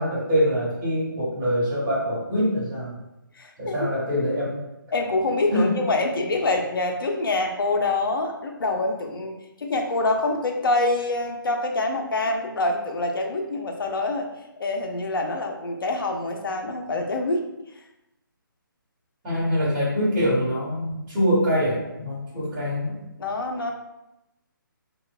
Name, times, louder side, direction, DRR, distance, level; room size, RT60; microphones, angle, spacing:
voice 1, 0.0-3.0 3.6-4.6 5.5-5.7 19.2-23.1, equal, 15° right, -10 dB, 1.1 m, -24 dB
voice 2, 3.4-3.7 4.9-14.3 14.6-17.4 22.3-22.5 23.2-23.7, left 2 dB, 75° left, 2 dB, 0.5 m, -25 dB
3.0 x 2.0 x 2.2 m, 0.92 s
hypercardioid pair, 160°, 12 cm